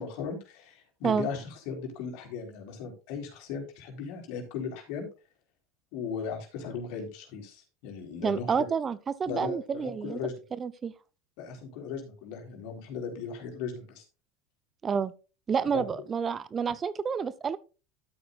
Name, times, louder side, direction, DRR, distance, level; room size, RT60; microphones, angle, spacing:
voice 1, 0.0-5.1 5.9-8.6 9.3-10.4 11.4-14.0 15.7-15.9, left 6 dB, 65° left, 4.0 m, -37 dB
voice 2, 8.2-10.2 10.6-10.9 14.8-15.1 15.5-17.6, right 6 dB, 30° right, 0.7 m, -29 dB
12.5 x 8.5 x 2.5 m
hypercardioid pair, 90°, 0 cm